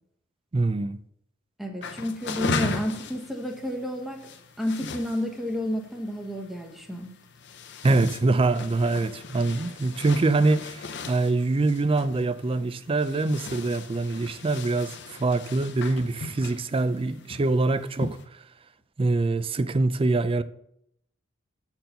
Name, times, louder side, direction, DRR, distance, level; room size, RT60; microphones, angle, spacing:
voice 1, 0.5-1.0 7.8-18.2 19.0-20.4, right 3 dB, 25° right, 0.4 m, -24 dB
voice 2, 1.6-4.3 4.6-7.1, equal, ahead, 1.1 m, -31 dB
sound 1, 1.8-18.3, left 4 dB, 60° left, 0.8 m, -38 dB
7.5 x 4.6 x 6.7 m
head